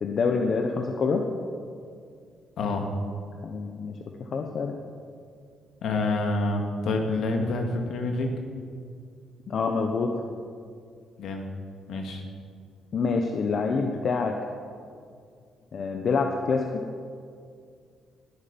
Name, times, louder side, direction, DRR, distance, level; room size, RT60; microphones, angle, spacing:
voice 1, 0.0-1.2 3.4-4.8 9.5-10.1 12.9-14.4 15.7-16.7, left 4 dB, 55° left, 3 dB, 1.1 m, -26 dB
voice 2, 2.6-2.9 5.8-8.4 11.2-11.4 11.9-12.2, left 2 dB, 75° left, 3 dB, 2.1 m, -27 dB
20.0 x 8.8 x 5.4 m, 2.3 s
cardioid pair, 90°, 0 cm